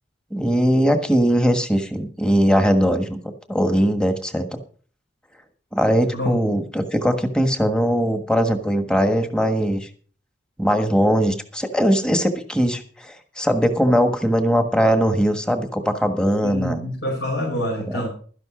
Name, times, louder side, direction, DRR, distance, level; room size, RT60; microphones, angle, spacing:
voice 1, 0.3-3.2 3.5-4.6 5.7-9.9 10.6-16.8 17.9-18.0, equal, 5° left, 7 dB, 1.4 m, -20 dB
voice 2, 16.4-18.1, left 1 dB, 75° left, -3 dB, 5.1 m, -26 dB
12.5 x 11.0 x 5.0 m, 0.43 s
head